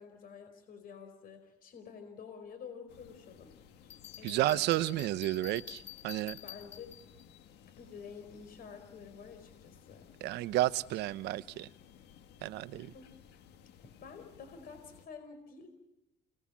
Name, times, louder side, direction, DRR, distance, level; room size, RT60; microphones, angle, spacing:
voice 1, 0.0-4.7 6.4-6.9 7.8-10.1 12.7-13.2 14.0-15.7, left 6 dB, 60° left, 4.7 m, -50 dB
sound 1, 2.9-15.1, left 8 dB, 80° left, 1.8 m, -58 dB
Bell, 3.9-7.2, left 12 dB, 40° left, 2.2 m, -49 dB
voice 2, 4.2-6.4 10.2-11.7 12.4-12.9, right 15 dB, 80° right, 0.9 m, -31 dB
29.5 x 20.0 x 7.4 m
cardioid pair, 110°, 17 cm